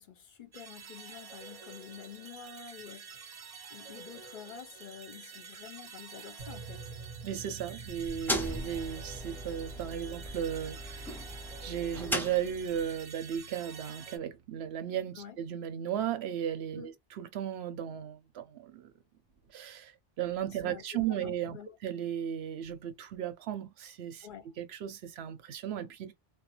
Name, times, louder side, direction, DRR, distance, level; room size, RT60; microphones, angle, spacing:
voice 1, 0.0-6.9 15.1-15.4 16.7-16.9 20.5-21.8 24.2-24.6, left 8 dB, 60° left, 0.7 m, -48 dB
sound 1, 0.5-14.2, right 5 dB, 45° right, 0.6 m, -49 dB
sound 2, 6.4-14.5, right 5 dB, 65° right, 0.9 m, -49 dB
voice 2, 7.2-11.2 11.6-18.9 19.5-19.9 20.2-21.6 21.8-24.3 24.6-26.1, right 9 dB, 90° right, 0.9 m, -35 dB
sound 3, 7.9-13.0, equal, 5° left, 0.3 m, -38 dB
2.4 x 2.1 x 2.8 m
omnidirectional pair, 1.0 m